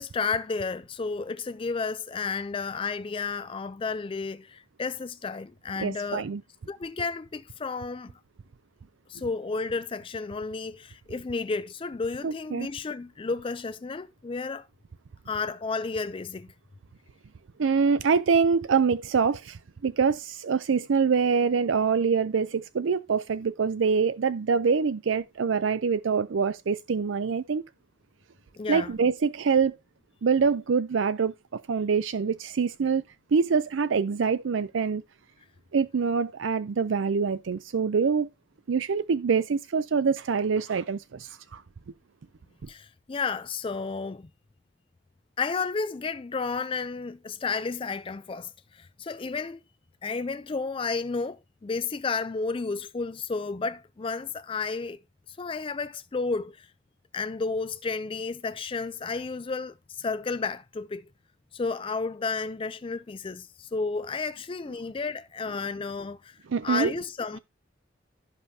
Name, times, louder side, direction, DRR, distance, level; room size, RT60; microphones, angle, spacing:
voice 1, 0.0-6.2 6.7-8.1 9.1-14.7 15.3-16.5 28.6-28.9 42.7-44.3 45.4-49.6 50.0-55.0 55.3-56.7 57.1-61.0 61.5-67.4, left 4 dB, 30° left, 0.4 m, -32 dB
voice 2, 5.8-6.4 12.2-12.7 17.6-27.6 28.7-29.8 30.2-33.0 33.3-35.0 35.7-38.3 38.7-41.6 66.5-66.9, right 5 dB, 90° right, 0.5 m, -25 dB
16.0 x 5.3 x 2.7 m
head